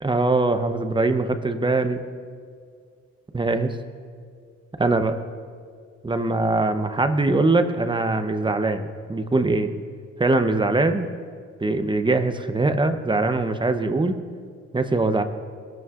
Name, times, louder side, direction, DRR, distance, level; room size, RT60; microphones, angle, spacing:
voice 1, 0.0-2.0 3.3-3.7 4.8-5.2 6.0-9.7 10.2-11.1 11.6-14.2 14.7-15.2, right 2 dB, 15° right, 8 dB, 0.8 m, -22 dB
20.0 x 12.5 x 2.5 m, 2.1 s
cardioid pair, 90°, 30 cm